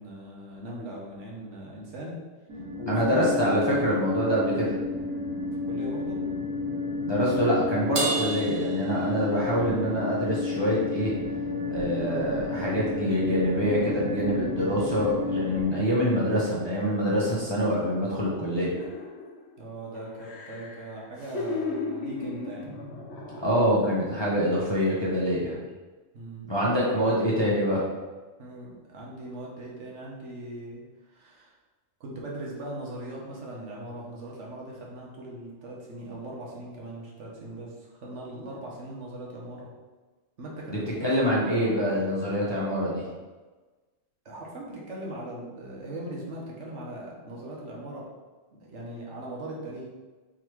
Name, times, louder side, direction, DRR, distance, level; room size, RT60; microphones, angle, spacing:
voice 1, 0.0-2.2 2.8-3.2 5.7-6.2 19.6-22.7 26.1-26.9 28.4-30.8 31.1-31.6 32.0-39.7 40.4-42.3 44.2-48.0 48.5-49.8, right 1 dB, 70° right, -3 dB, 1.3 m, -40 dB
sound 1, 2.5-15.6, left 2 dB, 90° right, 1.5 m, -31 dB
voice 2, 2.9-4.8 7.0-11.1 11.7-18.7 23.4-25.6 26.4-27.8 40.7-43.0, equal, 25° left, -7 dB, 0.8 m, -25 dB
Crash cymbal, 7.9-9.7, right 2 dB, 45° right, 0.4 m, -32 dB
sound 2, 18.7-19.5 19.9-24.1 24.5-24.7, left 3 dB, 60° left, 1.0 m, -36 dB
3.7 x 3.1 x 4.5 m, 1.3 s
omnidirectional pair, 1.3 m